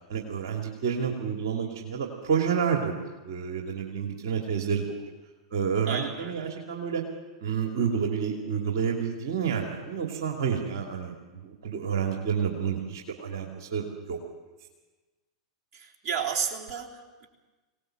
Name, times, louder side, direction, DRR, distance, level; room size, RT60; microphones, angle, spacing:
voice 1, 0.1-3.0 3.2-5.0 5.5-7.0 7.4-11.1 11.4-14.2, right 7 dB, 60° right, 1 dB, 2.6 m, -29 dB
voice 2, 5.9-6.5 15.7-17.3, right 7 dB, 40° right, 0 dB, 3.5 m, -33 dB
24.5 x 18.5 x 7.7 m, 1.2 s
figure-of-eight pair, 95°, 2 cm